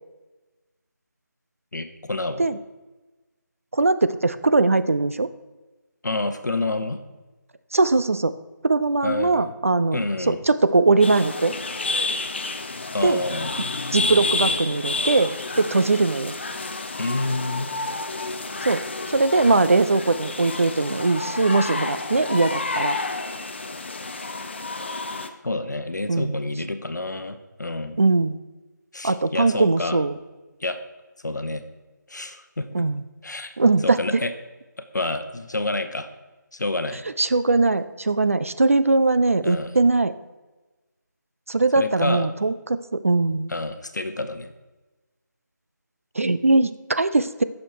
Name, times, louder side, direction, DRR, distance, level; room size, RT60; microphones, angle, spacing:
voice 1, 1.7-2.5 6.0-7.0 9.0-9.5 9.9-10.4 12.9-13.5 17.0-17.7 25.4-28.0 28.9-30.0 30.6-30.8 31.2-31.6 32.1-32.7 33.2-33.5 33.8-34.3 34.8-36.1 36.5-37.0 39.4-39.7 41.7-42.3 43.5-44.5, left 2 dB, 65° left, 8 dB, 0.9 m, -28 dB
voice 2, 3.7-5.3 7.7-8.4 8.6-10.0 10.3-11.5 13.0-13.2 13.9-16.3 18.6-23.0 26.1-26.4 28.0-28.4 29.0-30.2 32.7-33.0 33.6-34.2 37.2-40.1 41.5-43.5 46.2-47.4, right 3 dB, 45° right, 13 dB, 0.4 m, -20 dB
sound 1, 11.0-25.3, left 3 dB, 35° left, 0.5 m, -30 dB
8.6 x 6.5 x 4.5 m, 1.2 s
figure-of-eight pair, 165°, 10 cm